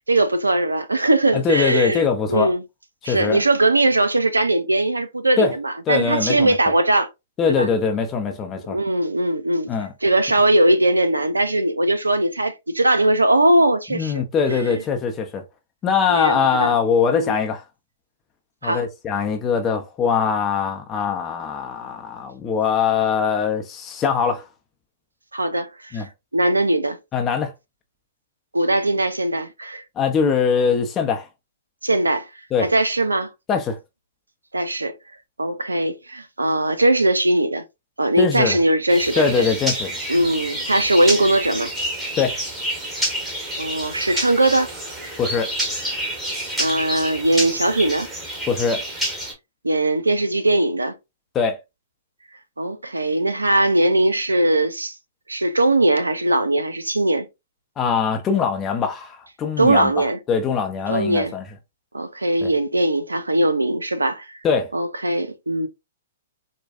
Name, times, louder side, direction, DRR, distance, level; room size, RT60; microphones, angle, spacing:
voice 1, 0.1-2.6 3.0-7.1 7.5-7.7 8.7-9.7 10.0-14.2 14.5-14.8 16.1-16.8 17.1-17.4 18.6-18.8 25.3-27.0 28.5-29.8 31.8-32.3 32.6-33.3 34.5-35.0 35.4-37.6 38.0-39.5 40.1-41.7 43.6-44.7 46.6-48.1 49.6-51.0 52.6-54.9 55.3-57.3 59.6-60.2 60.9-61.3 61.9-64.4 64.7-65.7, right 1 dB, 90° right, 0.6 m, -20 dB
voice 2, 1.3-2.5 3.0-3.4 5.4-5.5 5.9-6.6 7.4-8.8 9.7-9.9 13.9-15.4 15.8-17.6 18.6-24.5 25.9-26.1 27.1-27.5 30.0-31.3 32.5-32.7 33.5-33.8 38.2-38.6 39.2-40.0 42.2-42.4 45.2-45.5 48.5-48.8 51.3-51.6 57.8-61.5 62.4-62.5 64.4-64.7, left 6 dB, 20° left, 0.6 m, -22 dB
sound 1, 38.9-49.3, right 1 dB, 10° right, 1.5 m, -28 dB
4.6 x 2.2 x 2.5 m
figure-of-eight pair, 115°, 0 cm